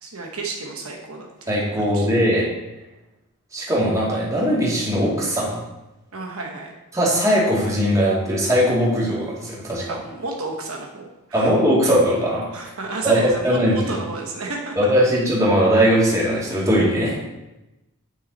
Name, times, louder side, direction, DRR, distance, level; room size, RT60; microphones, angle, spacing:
voice 1, 0.0-2.1 6.1-6.7 9.9-11.5 12.5-14.9, right 2 dB, 70° right, 1 dB, 1.1 m, -31 dB
voice 2, 1.5-2.4 3.5-5.6 6.9-9.8 11.3-12.5 13.0-13.2 13.4-13.8 14.8-17.3, equal, 15° right, -6 dB, 2.4 m, -19 dB
9.3 x 6.1 x 4.2 m, 0.98 s
head